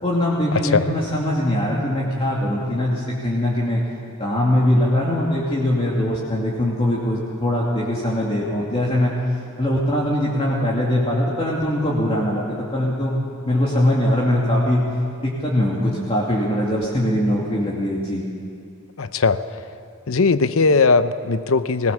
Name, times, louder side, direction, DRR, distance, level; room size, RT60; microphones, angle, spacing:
voice 1, 0.0-3.8 4.2-9.1 9.6-13.1 13.4-14.8 15.2-18.2, left 1 dB, 25° left, -5 dB, 2.5 m, -21 dB
voice 2, 0.5-0.9 19.0-19.4 20.1-21.9, left 4 dB, 70° left, 12 dB, 0.7 m, -18 dB
20.0 x 18.5 x 7.2 m, 2.4 s
head